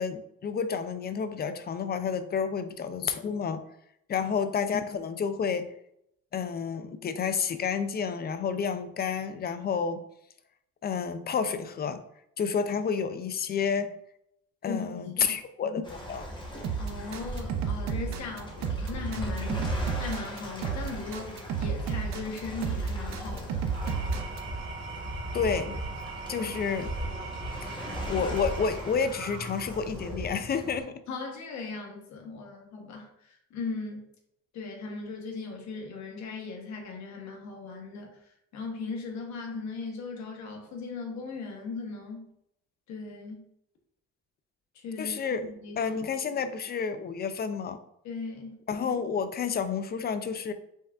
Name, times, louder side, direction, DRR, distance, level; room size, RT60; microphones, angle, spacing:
voice 1, 0.0-3.6 4.1-5.7 6.3-10.0 10.8-12.0 12.4-13.9 14.6-16.3 25.3-25.8 26.3-27.3 28.1-30.9 45.0-45.5 45.8-47.8 48.7-50.5, left 6 dB, 35° left, 10 dB, 0.4 m, -30 dB
voice 2, 14.6-15.4 16.8-23.7 26.4-26.5 31.1-34.1 34.5-38.2 38.5-42.3 42.9-43.5 44.7-46.0 48.0-48.6, left 4 dB, 70° left, 1 dB, 1.1 m, -38 dB
Waves surf, 15.8-30.8, equal, 15° left, 1.1 m, -37 dB
sound 1, 16.6-24.4, right 7 dB, 70° right, 0.6 m, -32 dB
Engine / Tools, 23.6-30.1, right 4 dB, 40° right, 1.5 m, -41 dB
5.3 x 3.4 x 2.4 m, 0.75 s
cardioid pair, 110°, 29 cm